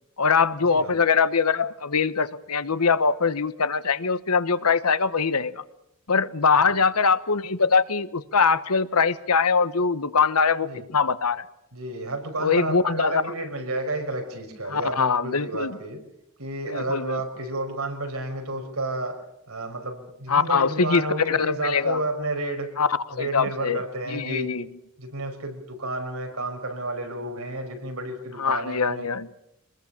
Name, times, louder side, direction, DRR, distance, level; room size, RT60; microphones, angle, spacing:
voice 1, 0.2-5.6 6.1-11.4 12.4-13.2 14.7-15.8 16.7-17.2 20.3-22.0 22.8-23.8 24.1-24.7 28.4-29.3, left 5 dB, 85° left, 14 dB, 1.2 m, -22 dB
voice 2, 11.7-16.0 16.4-22.7 23.1-24.5 25.0-29.1, right 2 dB, 75° right, 4 dB, 5.5 m, -31 dB
25.5 x 21.0 x 7.2 m, 0.80 s
head